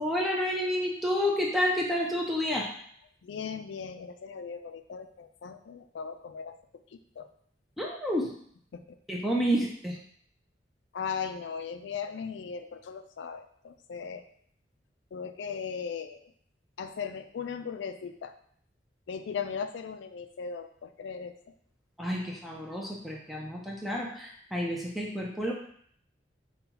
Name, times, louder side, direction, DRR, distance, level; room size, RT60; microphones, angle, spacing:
voice 1, 0.0-2.7 7.8-8.3 9.1-10.0 22.0-25.5, equal, ahead, -2 dB, 0.5 m, -29 dB
voice 2, 3.2-6.6 6.9-7.3 8.2-8.3 8.7-9.0 9.5-9.6 10.9-14.2 15.1-16.3 16.8-18.4 19.1-21.3, left 6 dB, 80° left, 8 dB, 0.3 m, -38 dB
5.4 x 2.3 x 2.8 m, 0.63 s
head